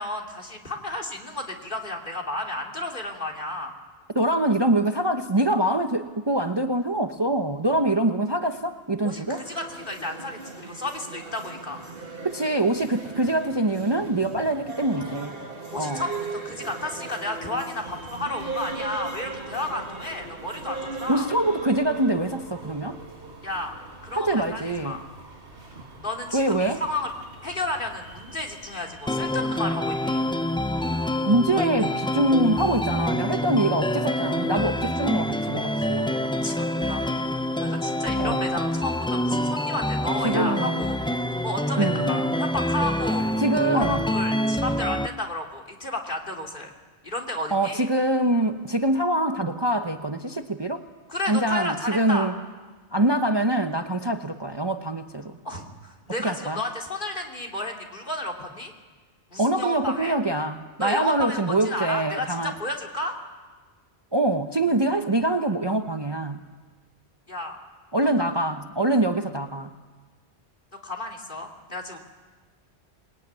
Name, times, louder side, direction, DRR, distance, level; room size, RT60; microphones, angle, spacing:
voice 1, 0.0-3.7 9.0-11.8 15.7-16.1 16.4-21.3 23.4-23.8 24.0-25.0 26.0-27.1 27.4-30.2 31.5-31.6 36.4-36.6 36.8-37.0 37.6-41.0 41.4-43.3 43.7-46.7 47.0-47.9 51.1-52.3 55.4-58.7 59.3-60.1 60.8-63.1 67.3-67.6 70.8-72.0, left 1 dB, 45° left, 1 dB, 3.2 m, -32 dB
voice 2, 4.1-9.5 12.2-15.3 15.7-16.1 21.1-23.0 24.1-25.0 26.3-26.8 31.3-36.2 38.2-38.5 40.2-40.8 41.8-42.2 43.4-44.0 47.5-50.8 51.2-52.3 52.9-55.4 56.2-56.6 59.4-62.5 64.1-66.4 67.9-69.7, right 1 dB, 25° right, 6 dB, 1.0 m, -24 dB
sound 1, 9.3-28.8, right 3 dB, 55° right, 2.7 m, -39 dB
sound 2, 17.8-33.1, right 2 dB, 75° right, 3.3 m, -48 dB
sound 3, 29.1-45.1, left 1 dB, 5° left, 0.6 m, -26 dB
27.0 x 21.0 x 9.6 m, 1.4 s
omnidirectional pair, 1.1 m